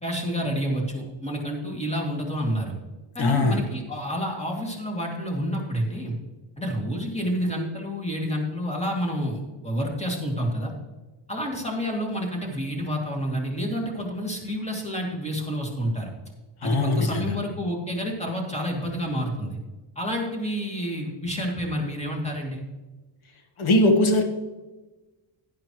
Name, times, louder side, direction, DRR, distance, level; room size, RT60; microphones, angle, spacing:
voice 1, 0.0-2.7 3.1-6.1 6.6-10.7 11.3-16.1 16.6-19.6 20.0-22.6, equal, 15° left, 0 dB, 2.4 m, -29 dB
voice 2, 3.2-3.6 16.6-17.3 23.6-24.2, left 2 dB, 75° left, 4 dB, 1.5 m, -21 dB
11.0 x 11.0 x 3.1 m, 1.1 s
cardioid pair, 120°, 49 cm